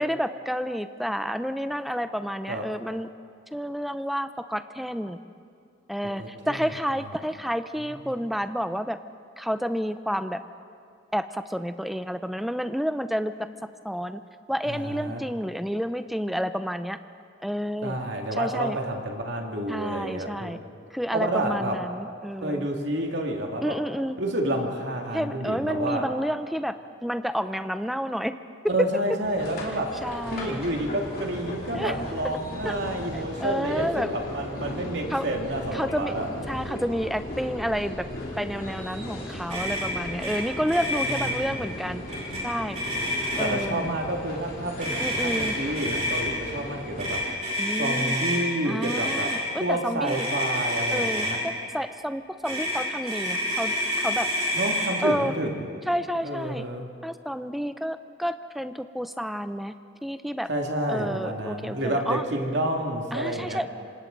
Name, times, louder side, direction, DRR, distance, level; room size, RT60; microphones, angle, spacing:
voice 1, 0.0-3.1 3.5-5.2 5.9-9.0 9.4-10.4 11.1-13.3 13.8-14.2 14.5-17.0 17.4-18.0 18.4-18.8 19.7-20.6 20.9-22.7 23.6-24.2 25.1-26.8 27.0-28.4 30.0-30.8 31.7-32.0 32.6-32.7 33.1-34.1 35.1-35.3 35.7-36.1 36.5-38.1 38.4-42.0 42.4-42.8 43.4-43.9 45.0-45.6 47.6-48.2 48.7-50.3 50.9-54.3 55.0-55.3 55.9-56.6 57.0-59.7 60.0-60.5 60.9-62.2 63.1-63.7, equal, ahead, 10 dB, 0.5 m, -30 dB
voice 2, 6.2-6.6 7.9-8.1 14.7-15.2 17.8-20.5 21.1-21.8 22.4-23.8 24.2-26.1 28.7-30.0 30.3-36.3 41.0-41.7 42.9-43.1 43.4-47.4 47.7-49.3 49.6-51.5 54.5-55.7 56.2-56.9 60.5-63.6, right 1 dB, 60° right, 1 dB, 2.4 m, -29 dB
sound 1, 29.2-47.3, left 1 dB, 45° left, 3.1 m, -37 dB
Motor vehicle (road), 39.5-39.9 40.2-40.4 40.6-41.3 42.1-42.4 42.7-43.6 44.8-46.2 47.0-48.4 48.8-49.4 50.0-51.4 52.4-54.9, equal, 35° right, 5.9 m, -28 dB
27.0 x 26.0 x 4.0 m, 2.3 s
head